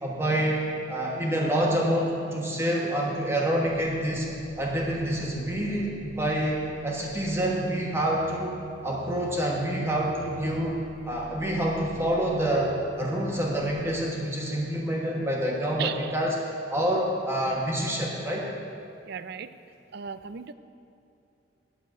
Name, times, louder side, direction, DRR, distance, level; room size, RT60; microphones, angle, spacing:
voice 1, 0.0-4.3 4.6-8.6 8.8-10.8 11.0-16.3 16.7-18.4, right 1 dB, 15° right, -2 dB, 1.3 m, -27 dB
sound 1, 3.6-14.0, right 3 dB, 20° left, 0.8 m, -46 dB
voice 2, 15.8-16.2 17.4-17.6 19.1-19.6 19.9-20.5, right 8 dB, 55° right, 13 dB, 0.4 m, -36 dB
8.9 x 6.8 x 8.1 m, 2.8 s
head